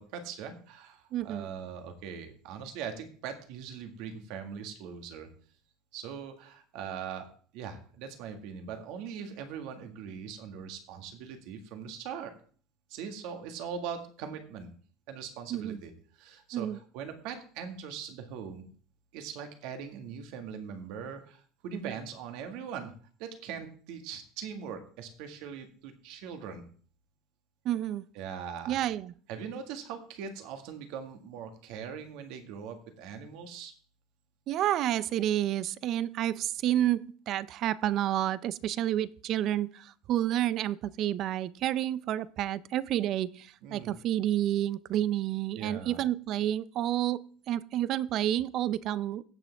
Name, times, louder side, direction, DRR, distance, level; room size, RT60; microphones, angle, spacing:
voice 1, 0.0-5.3 5.9-7.3 7.5-12.3 12.9-14.7 15.1-18.7 19.1-22.9 23.2-26.6 28.2-28.8 29.3-33.7 43.6-43.9 45.5-46.0, right 7 dB, 65° right, 6 dB, 1.8 m, -41 dB
voice 2, 1.1-1.5 15.5-15.8 16.5-16.8 21.7-21.9 27.6-28.0 28.7-29.1 34.5-49.2, right 12 dB, 45° right, 19 dB, 0.4 m, -30 dB
16.5 x 6.1 x 3.5 m, 0.44 s
cardioid pair, 145°, 0 cm